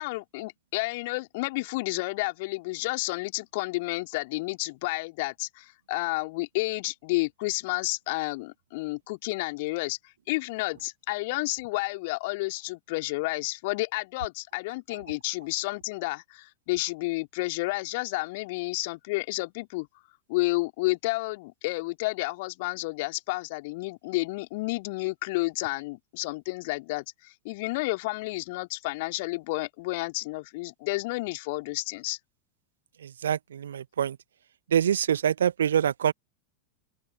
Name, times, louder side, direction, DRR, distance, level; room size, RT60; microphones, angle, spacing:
voice 1, 0.0-19.9 20.3-32.2, left 23 dB, 50° left, 3.5 m, -31 dB
voice 2, 33.0-34.2 34.7-36.1, right 9 dB, 65° right, 1.1 m, -25 dB
open air
figure-of-eight pair, 90°, 0 cm